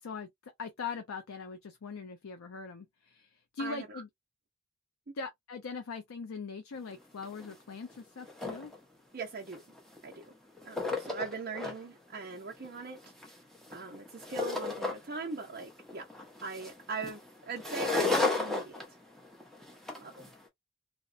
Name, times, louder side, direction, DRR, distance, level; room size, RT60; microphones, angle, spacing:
voice 1, 0.0-4.1 5.1-8.7, left 5 dB, 90° left, 0.5 m, -41 dB
voice 2, 3.6-4.0 5.1-5.2 9.1-9.6 10.0-10.3 10.6-13.0 13.7-16.0 16.4-18.8 20.0-20.2, right 4 dB, 45° right, 0.5 m, -40 dB
sound 1, 6.9-7.0 7.2-7.5 7.9-8.8 9.5-10.2 10.6-11.8 12.2-15.3 15.6-20.3, left 3 dB, ahead, 0.6 m, -34 dB
2.8 x 2.1 x 2.4 m
head